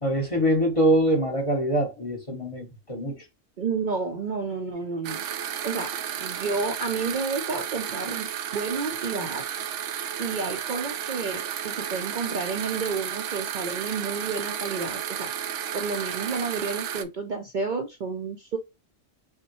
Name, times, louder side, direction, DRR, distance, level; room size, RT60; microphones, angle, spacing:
voice 1, 0.0-3.2, right 1 dB, 30° left, 1.1 m, -24 dB
voice 2, 3.6-5.2 5.6-9.4 10.2-15.3 15.7-18.6, right 4 dB, 50° right, 0.6 m, -31 dB
sound 1, 5.0-17.0, right 10 dB, 80° right, 0.9 m, -33 dB
5.6 x 2.2 x 2.9 m
omnidirectional pair, 1.3 m